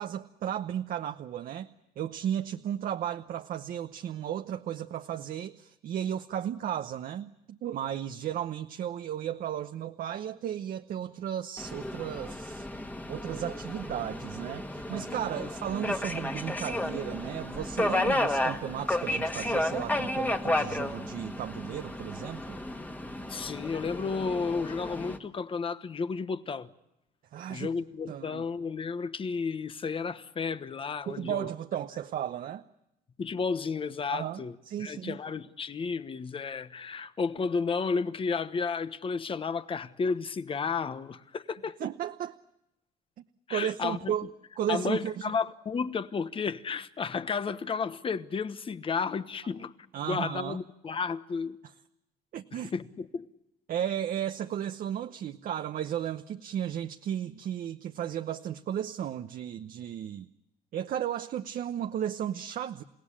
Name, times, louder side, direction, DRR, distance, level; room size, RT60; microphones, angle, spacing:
voice 1, 0.0-1.7 2.0-12.7 13.1-22.6 27.3-27.7 28.1-28.4 31.1-32.6 34.1-35.2 41.8-42.3 43.5-45.3 49.9-50.6 52.3-52.7 53.7-60.3 60.7-62.8, right 10 dB, 55° right, 0.9 m, -34 dB
Subway metro underground, 11.6-25.2, left 1 dB, 10° left, 1.8 m, -32 dB
voice 2, 23.3-26.7 27.5-31.5 33.2-41.8 43.5-44.1 44.7-49.7 50.0-51.6 52.5-53.3, left 5 dB, 30° left, 1.2 m, -32 dB
29.5 x 17.0 x 10.0 m
cardioid pair, 110°, 17 cm